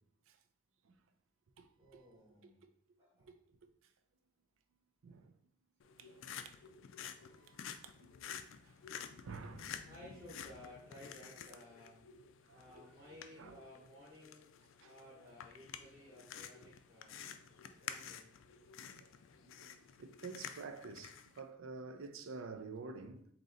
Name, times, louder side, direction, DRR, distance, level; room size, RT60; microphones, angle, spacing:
voice 1, 1.8-2.6 3.0-3.3 9.8-12.0 12.5-17.1 17.8-18.3, left 1 dB, 15° right, 0.9 m, -57 dB
sound 1, 5.8-21.4, left 8 dB, 75° left, 0.3 m, -51 dB
voice 2, 6.0-6.6 7.4-8.3 8.6-8.9 9.2-9.8 12.5-12.8 13.4-13.6 14.8-14.9 17.2-17.4 18.9-19.1 19.4-23.3, right 4 dB, 85° right, 0.5 m, -50 dB
3.9 x 3.0 x 3.8 m
head